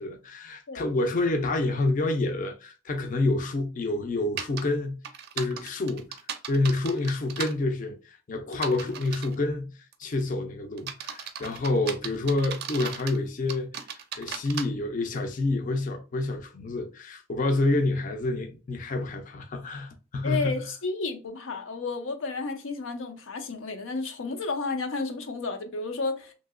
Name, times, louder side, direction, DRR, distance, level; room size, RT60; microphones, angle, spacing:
voice 1, 0.0-5.0 5.3-6.2 6.5-13.7 14.2-20.6, left 2 dB, 40° left, 0.4 m, -28 dB
sound 1, 4.4-4.6 5.0-7.5 8.5-9.3 9.9-10.2 10.8-13.2 13.5-14.6, right 7 dB, 55° right, 0.4 m, -36 dB
voice 2, 20.2-26.3, left 3 dB, 90° left, 0.6 m, -32 dB
2.9 x 2.7 x 2.4 m
head